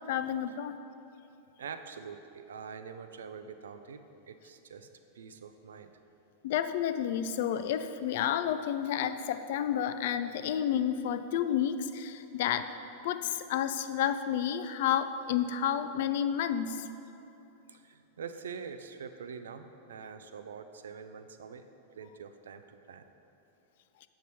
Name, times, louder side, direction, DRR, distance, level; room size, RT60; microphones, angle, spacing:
voice 1, 0.1-0.8 6.4-12.7 13.0-16.9, left 9 dB, 55° left, 11 dB, 0.3 m, -30 dB
voice 2, 1.6-4.9 5.1-5.9 17.7-21.6 22.0-23.0, right 6 dB, 65° right, 9 dB, 0.4 m, -45 dB
8.2 x 5.7 x 4.1 m, 2.8 s
figure-of-eight pair, 90°, 0 cm